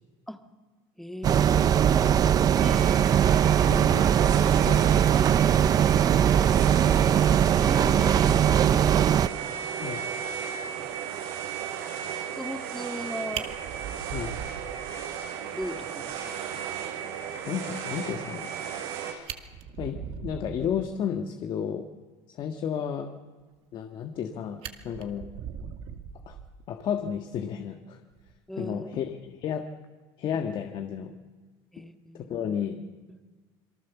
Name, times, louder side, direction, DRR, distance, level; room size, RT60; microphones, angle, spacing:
voice 1, 1.0-2.9 3.5-3.8 5.5-6.2 7.5-8.9 9.3-9.7 10.5-11.0 12.1-13.5 15.5-16.4 28.5-28.9 31.7-32.3, equal, ahead, 6 dB, 1.7 m, -39 dB
sound 1, 1.2-9.3, right 9 dB, 30° right, 0.7 m, -21 dB
sound 2, 2.5-19.1, right 8 dB, 80° right, 6.5 m, -35 dB
voice 2, 3.7-4.1 4.7-5.2 9.8-10.0 14.1-14.3 17.4-18.5 19.8-21.9 22.3-23.1 23.7-25.3 26.3-26.4 26.7-28.0 28.6-29.6 30.2-31.1 32.1-32.8, left 8 dB, 40° left, 5 dB, 1.7 m, -32 dB
Fire, 12.9-13.0 13.3-15.3 15.6-15.7 16.1-16.2 16.5-16.6 18.8-18.9 19.2-20.9 23.7-24.3 24.6-26.8 28.1-28.3, right 8 dB, 55° right, 2.3 m, -40 dB
27.5 x 23.0 x 7.2 m, 1.4 s
cardioid pair, 135°, 12 cm